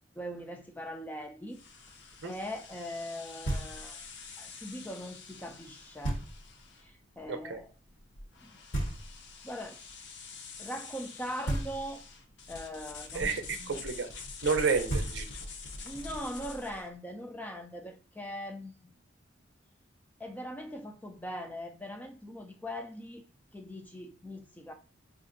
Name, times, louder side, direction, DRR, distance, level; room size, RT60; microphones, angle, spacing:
voice 1, 0.2-1.6 2.2-4.0 4.4-6.2 6.8-7.7 8.4-8.6 9.4-9.8 10.6-12.0 12.5-13.8 15.8-19.0 20.2-23.2 23.5-24.7, equal, 10° left, 0.3 m, -41 dB
sound 1, 1.5-16.9, left 4 dB, 60° left, 0.6 m, -46 dB
Knock, 3.4-4.1 6.0-6.7 8.7-9.5 11.4-12.2 14.5-14.6 14.9-15.7, right 1 dB, 85° left, 1.3 m, -35 dB
voice 2, 7.3-7.6 13.1-14.1 14.4-15.2, right 5 dB, 65° right, 0.5 m, -30 dB
5.3 x 2.4 x 2.5 m
head